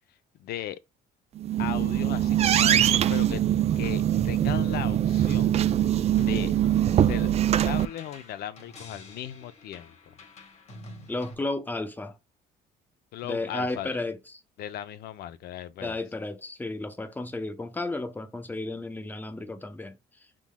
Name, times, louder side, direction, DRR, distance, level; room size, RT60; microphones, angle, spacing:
voice 1, 0.4-0.8 1.6-3.4 3.8-5.6 6.2-6.5 7.0-7.3 7.6-10.0 13.1-14.0 14.6-16.0, left 11 dB, 70° left, 0.6 m, -37 dB
sound 1, 1.4-7.9, right 11 dB, 40° right, 0.3 m, -23 dB
sound 2, 6.1-11.3, left 1 dB, 40° left, 1.4 m, -48 dB
voice 2, 11.1-12.2 13.2-14.2 15.8-20.0, left 2 dB, 10° left, 0.7 m, -33 dB
6.0 x 3.7 x 2.2 m
cardioid pair, 110°, 17 cm